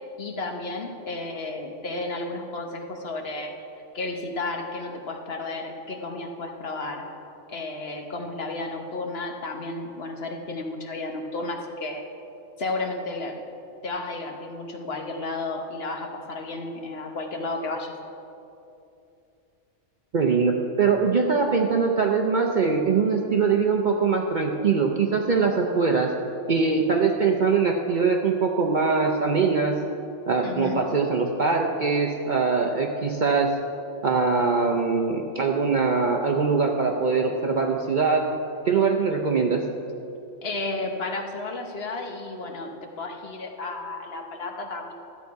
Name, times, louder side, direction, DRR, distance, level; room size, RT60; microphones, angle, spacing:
voice 1, 0.2-3.5 3.9-7.0 7.5-12.0 12.6-13.4 13.8-17.9 30.4-30.8 40.4-44.9, left 2 dB, 50° left, 3 dB, 1.1 m, -32 dB
voice 2, 20.1-26.1 26.5-29.8 30.3-33.5 34.0-38.3 38.6-39.6, right 4 dB, 50° right, 2 dB, 0.6 m, -22 dB
13.0 x 8.3 x 4.7 m, 2.8 s
omnidirectional pair, 1.4 m